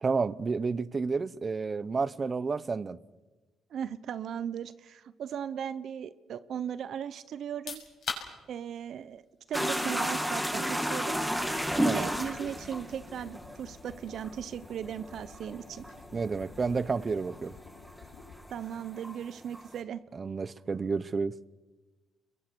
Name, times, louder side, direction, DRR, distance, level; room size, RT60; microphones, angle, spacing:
voice 1, 0.0-3.0 11.8-12.1 16.1-17.5 20.1-21.3, right 4 dB, 35° right, 0.9 m, -30 dB
voice 2, 3.7-7.8 8.5-9.2 9.5-11.2 11.8-15.8 18.5-20.0, right 8 dB, 65° right, 0.9 m, -37 dB
sound 1, 7.4-20.1, left 5 dB, 55° left, 7.0 m, -49 dB
sound 2, 9.5-18.1 18.3-19.7, equal, ahead, 2.2 m, -32 dB
sound 3, 11.2-18.4, left 5 dB, 80° left, 5.2 m, -51 dB
29.5 x 22.5 x 6.2 m
cardioid pair, 90°, 0 cm